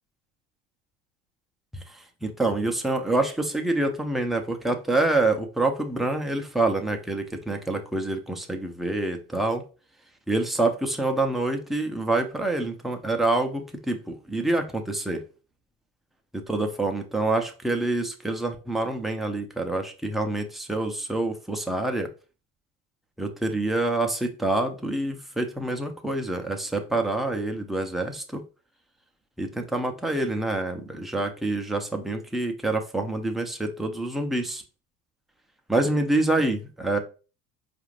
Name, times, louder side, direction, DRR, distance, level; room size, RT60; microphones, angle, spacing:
voice 1, 2.2-9.6 10.3-15.2 16.5-22.1 23.2-28.4 29.4-34.6 35.7-37.0, right 2 dB, ahead, 0.7 m, -26 dB
4.7 x 2.6 x 3.2 m
hypercardioid pair, 80°, 42 cm